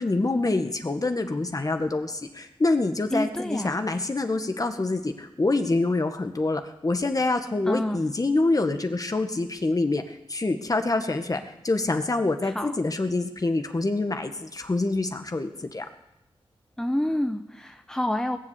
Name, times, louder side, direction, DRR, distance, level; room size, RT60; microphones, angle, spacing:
voice 1, 0.0-15.9, left 2 dB, 35° left, 6 dB, 1.7 m, -26 dB
voice 2, 3.1-3.7 7.7-8.0 12.4-12.7 16.8-18.4, left 1 dB, 5° left, 6 dB, 1.0 m, -28 dB
20.5 x 7.4 x 8.5 m, 0.84 s
cardioid pair, 55°, 10 cm